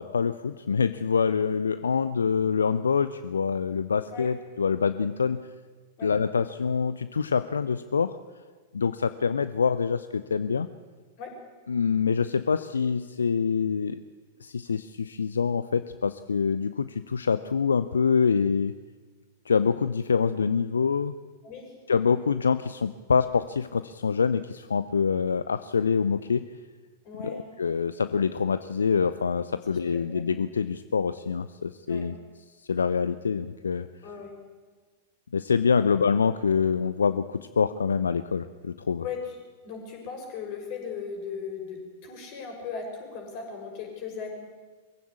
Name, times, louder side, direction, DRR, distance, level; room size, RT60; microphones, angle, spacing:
voice 1, 0.0-5.5 6.0-8.2 8.7-10.7 11.7-14.0 14.4-18.7 19.5-21.2 21.9-26.5 27.2-32.1 32.6-33.9 35.3-39.0, left 6 dB, 70° left, 13 dB, 0.6 m, -25 dB
voice 2, 21.4-21.7 27.0-27.4 29.9-30.2 31.9-32.0 34.0-34.3 35.7-35.9 39.0-39.4 39.6-44.3, left 5 dB, 40° left, 1 dB, 6.3 m, -37 dB
23.0 x 15.5 x 8.6 m, 1.4 s
figure-of-eight pair, 95°, 0 cm